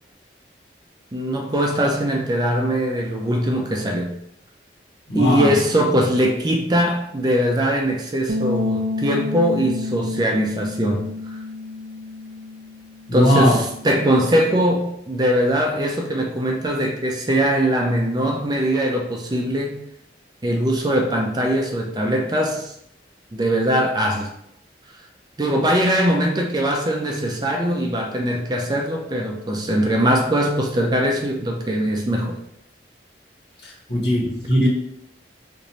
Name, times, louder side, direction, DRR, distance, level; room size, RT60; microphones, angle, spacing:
voice 1, 1.1-4.1 5.1-11.1 13.1-19.8 20.4-22.7 23.3-24.3 25.4-32.4, equal, 25° right, 1 dB, 0.4 m, -21 dB
voice 2, 5.1-5.5 13.1-13.5 33.6-34.7, equal, 75° left, -5 dB, 1.4 m, -19 dB
sound 1, 8.3-14.5, left 3 dB, 90° right, 0.4 m, -30 dB
3.0 x 2.6 x 4.1 m, 0.76 s
head